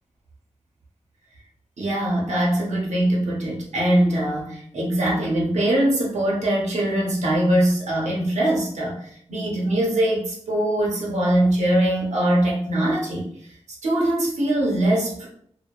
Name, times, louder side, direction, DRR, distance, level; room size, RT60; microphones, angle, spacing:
voice 1, 1.8-13.3 13.8-15.3, right 1 dB, 75° right, -3 dB, 0.8 m, -22 dB
2.7 x 2.1 x 2.3 m, 0.63 s
cardioid pair, 55°, 12 cm